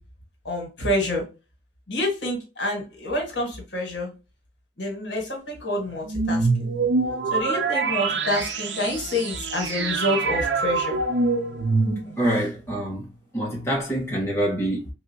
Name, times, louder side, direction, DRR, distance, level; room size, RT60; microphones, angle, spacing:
voice 1, 0.4-1.2 1.9-4.1 4.8-6.5 7.3-11.0, left 1 dB, 75° left, 1.5 m, -27 dB
sound 1, 6.1-12.4, right 3 dB, 75° right, 0.6 m, -25 dB
voice 2, 12.2-13.1 13.3-14.9, right 1 dB, 15° left, 1.1 m, -25 dB
3.3 x 2.7 x 2.7 m
head